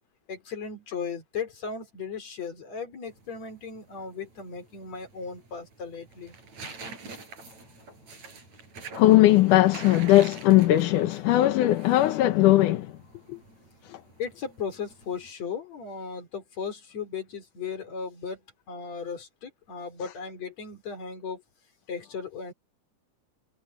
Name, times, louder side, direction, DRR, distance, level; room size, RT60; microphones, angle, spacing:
voice 1, 0.3-6.4 12.5-12.6 13.3-13.4 13.9-18.4 18.7-21.4 21.9-22.5, left 6 dB, 60° left, 5.0 m, -36 dB
sound 1, 3.1-15.3, right 4 dB, 60° right, 7.5 m, -46 dB
voice 2, 9.0-12.9, left 15 dB, 85° left, 2.6 m, -19 dB
omnidirectional pair, 3.6 m